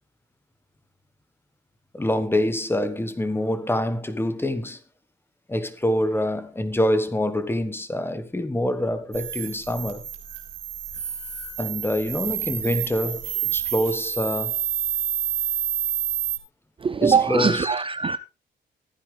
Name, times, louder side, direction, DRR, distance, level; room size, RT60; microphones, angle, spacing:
voice 1, 1.9-4.8 5.5-10.0 11.6-13.2 13.5-14.6 17.0-17.7, left 1 dB, 10° left, 1.5 m, -25 dB
sound 1, 9.1-16.4, right 10 dB, 85° right, 3.0 m, -29 dB
voice 2, 16.8-18.2, right 5 dB, 25° right, 0.5 m, -21 dB
14.5 x 10.0 x 3.4 m
cardioid pair, 90°, 20 cm